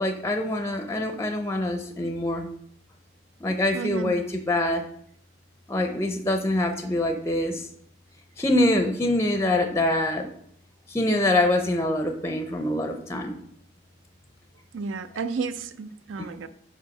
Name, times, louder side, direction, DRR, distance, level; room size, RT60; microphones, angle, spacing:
voice 1, 0.0-2.5 3.4-4.8 5.7-7.7 8.4-10.3 10.9-13.4, left 1 dB, 15° left, 0.5 m, -25 dB
voice 2, 3.7-4.1 14.7-16.5, right 4 dB, 75° right, 0.4 m, -32 dB
7.5 x 2.7 x 5.2 m
head